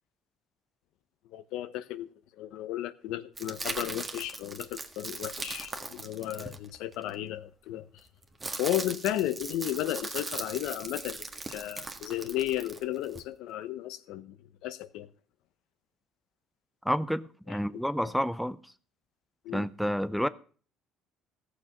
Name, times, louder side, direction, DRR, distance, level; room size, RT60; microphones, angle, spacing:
voice 1, 1.3-2.1 2.4-7.9 8.6-15.1 17.5-17.6 19.4-19.7, left 13 dB, 75° left, 0.8 m, -34 dB
sound 1, 3.4-7.1 8.0-13.2, right 3 dB, 20° right, 1.5 m, -39 dB
voice 2, 16.8-18.6 19.5-20.3, equal, ahead, 0.5 m, -29 dB
15.0 x 6.7 x 5.9 m
cardioid pair, 100°, 0 cm